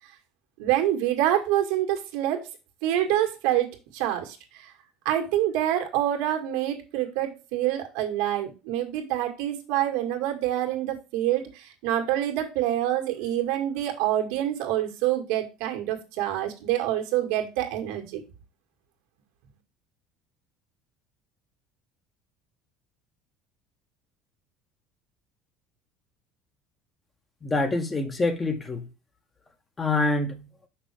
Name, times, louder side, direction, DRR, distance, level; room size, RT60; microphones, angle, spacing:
voice 1, 0.6-2.5 2.8-4.7 5.1-18.2, right 12 dB, 80° right, 2.0 m, -26 dB
voice 2, 27.4-28.8 29.8-30.4, left 2 dB, 20° left, 1.4 m, -25 dB
6.2 x 6.0 x 3.5 m
supercardioid pair, 105°, 0 cm